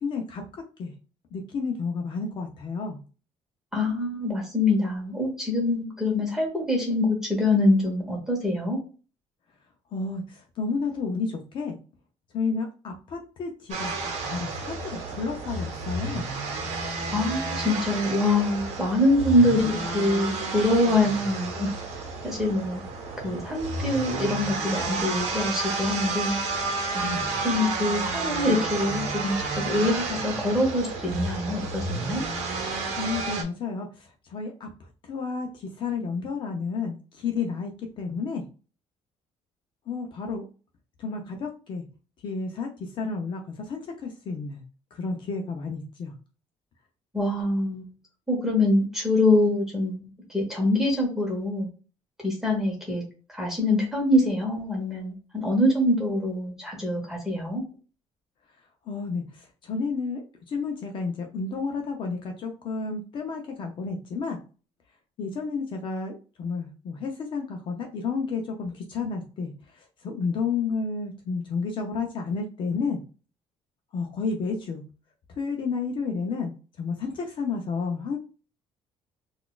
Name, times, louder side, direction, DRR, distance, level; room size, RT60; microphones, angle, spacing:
voice 1, 0.0-0.9 1.3-3.0 9.9-11.8 12.3-14.0 14.2-16.3 27.0-27.4 33.0-34.7 35.0-37.7 38.0-38.4 39.9-40.5 41.0-41.8 42.2-44.6 44.9-46.1 58.9-60.2 60.5-64.4 65.2-73.0 73.9-74.8 75.4-76.5 76.8-78.2, left 4 dB, 45° left, 3 dB, 0.5 m, -31 dB
voice 2, 3.7-8.8 17.1-21.7 22.2-22.8 23.2-26.4 26.9-32.2 47.1-47.9 48.3-50.1 50.3-51.7 52.2-53.0 53.3-57.6, left 1 dB, 5° right, -1 dB, 1.0 m, -24 dB
sound 1, 13.7-33.4, right 3 dB, 70° right, 0.8 m, -31 dB
3.9 x 2.3 x 2.3 m, 0.36 s
cardioid pair, 170°, 12 cm